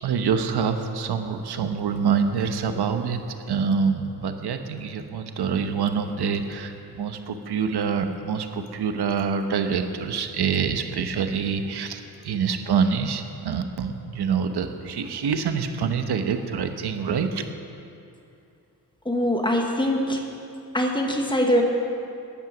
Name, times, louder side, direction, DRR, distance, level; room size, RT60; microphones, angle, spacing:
voice 1, 0.0-3.2 3.5-17.5, right 6 dB, 75° right, 7 dB, 1.0 m, -26 dB
voice 2, 19.0-20.2 20.7-21.6, equal, 10° left, 1 dB, 1.2 m, -22 dB
14.0 x 10.5 x 6.1 m, 2.6 s
wide cardioid pair, 170°, 40 cm